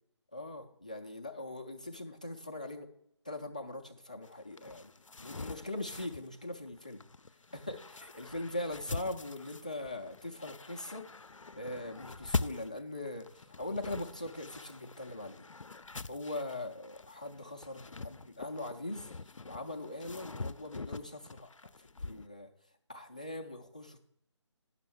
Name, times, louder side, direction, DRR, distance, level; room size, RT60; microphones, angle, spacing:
voice 1, 0.3-2.9 3.3-4.9 5.2-7.0 7.5-11.1 11.6-15.5 16.1-19.1 19.5-21.5 21.8-22.5 22.9-24.0, left 2 dB, 15° left, 1 dB, 0.3 m, -41 dB
sound 1, 4.2-22.3, left 3 dB, 90° left, 0.4 m, -43 dB
10.0 x 6.2 x 4.7 m, 0.74 s
figure-of-eight pair, 155°, 16 cm